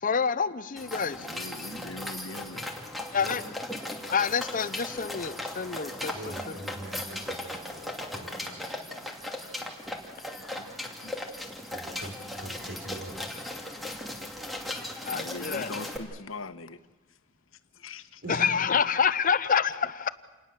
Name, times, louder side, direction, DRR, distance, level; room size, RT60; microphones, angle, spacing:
voice 1, 0.0-1.3 3.1-3.4 4.1-6.3 15.0-15.7 18.3-20.1, left 6 dB, 40° left, 15 dB, 0.7 m, -27 dB
sound 1, 0.8-16.0, left 1 dB, ahead, 2.6 m, -37 dB
voice 2, 1.2-2.7 9.0-9.1 9.6-10.0 10.3-10.7 11.0-11.1 15.0-16.8 17.7-18.2, left 3 dB, 80° left, 11 dB, 1.1 m, -42 dB
voice 3, 6.1-8.8 11.7-13.3 18.2-18.5, right 1 dB, 60° right, 5 dB, 4.3 m, -42 dB
28.0 x 19.5 x 7.4 m, 1.2 s
head